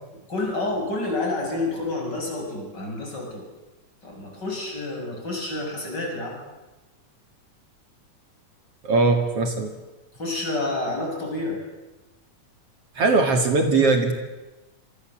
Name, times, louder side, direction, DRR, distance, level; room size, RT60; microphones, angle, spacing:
voice 1, 0.3-3.5 4.0-6.4 10.2-11.6, left 2 dB, 35° left, 1 dB, 7.8 m, -29 dB
voice 2, 8.8-9.7 13.0-14.1, right 3 dB, 55° right, 5 dB, 3.0 m, -20 dB
27.5 x 24.5 x 7.7 m, 1.1 s
omnidirectional pair, 3.3 m